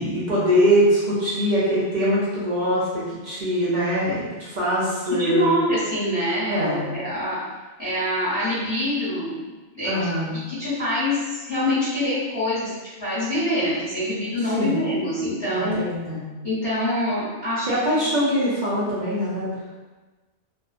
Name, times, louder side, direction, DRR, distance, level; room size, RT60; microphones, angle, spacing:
voice 1, 0.0-5.5 6.5-6.9 9.8-10.4 14.5-14.8 15.5-16.2 17.6-19.7, equal, 50° right, -8 dB, 0.6 m, -23 dB
voice 2, 5.2-7.4 7.8-10.1 10.5-15.8 16.4-17.7 18.0-18.1, left 1 dB, 25° left, -12 dB, 0.8 m, -25 dB
2.6 x 2.0 x 2.4 m, 1.2 s
omnidirectional pair, 1.2 m